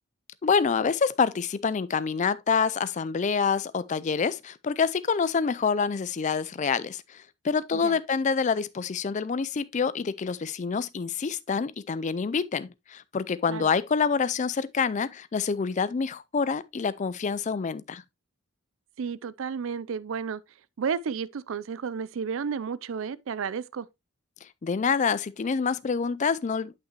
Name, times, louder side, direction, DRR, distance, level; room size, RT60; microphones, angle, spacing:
voice 1, 0.4-18.0 24.6-26.7, left 5 dB, 35° left, 0.4 m, -27 dB
voice 2, 19.0-20.4 20.8-23.9, right 6 dB, 65° right, 0.4 m, -32 dB
8.9 x 5.7 x 2.9 m
head